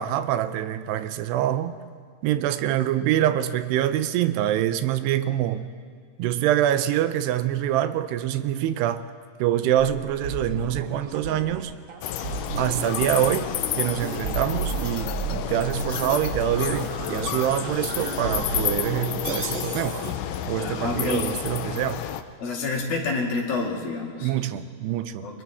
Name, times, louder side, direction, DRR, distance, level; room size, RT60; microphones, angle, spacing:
voice 1, 0.0-1.8 2.2-5.7 6.2-9.0 9.4-11.7 12.6-20.0 20.5-22.0 24.2-25.4, right 11 dB, 90° right, 12 dB, 2.8 m, -25 dB
sound 1, 9.8-20.1, right 3 dB, 65° right, 1.3 m, -33 dB
sound 2, 12.0-22.2, left 11 dB, 85° left, 1.9 m, -30 dB
voice 2, 20.6-21.3 22.4-24.3 25.2-25.4, left 3 dB, 65° left, -1 dB, 4.0 m, -28 dB
29.5 x 24.0 x 3.6 m, 2.1 s
omnidirectional pair, 4.7 m